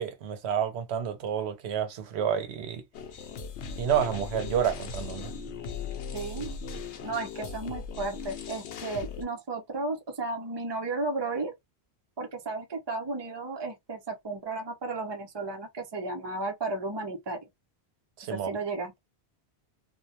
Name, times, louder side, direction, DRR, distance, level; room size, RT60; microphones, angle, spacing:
voice 1, 0.0-2.8 3.8-5.3 18.2-18.5, right 8 dB, 75° right, 0.8 m, -29 dB
sound 1, 2.9-9.2, left 5 dB, 90° left, 0.9 m, -38 dB
voice 2, 6.1-6.5 7.0-11.5 12.2-17.4 18.3-19.0, right 3 dB, 30° right, 0.6 m, -34 dB
2.3 x 2.2 x 2.7 m
omnidirectional pair, 1.1 m